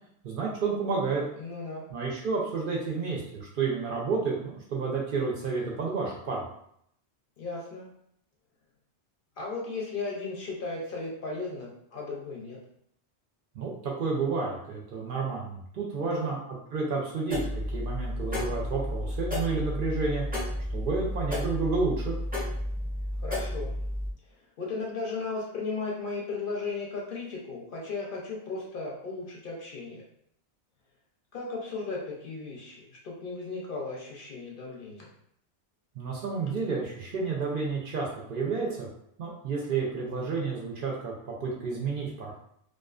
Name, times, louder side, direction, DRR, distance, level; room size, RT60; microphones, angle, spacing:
voice 1, 0.2-1.2 1.9-6.4 13.5-16.4 16.7-20.3 20.7-22.1 36.0-38.9 39.2-42.4, right 4 dB, 60° right, -3 dB, 0.6 m, -30 dB
voice 2, 1.4-1.8 7.4-7.9 9.4-12.6 16.0-16.3 23.2-23.8 24.6-30.0 31.3-35.1, left 3 dB, 60° left, -3 dB, 0.6 m, -36 dB
sound 1, 17.3-24.1, left 1 dB, 15° right, 0.4 m, -32 dB
2.3 x 2.3 x 2.3 m, 0.70 s
omnidirectional pair, 1.2 m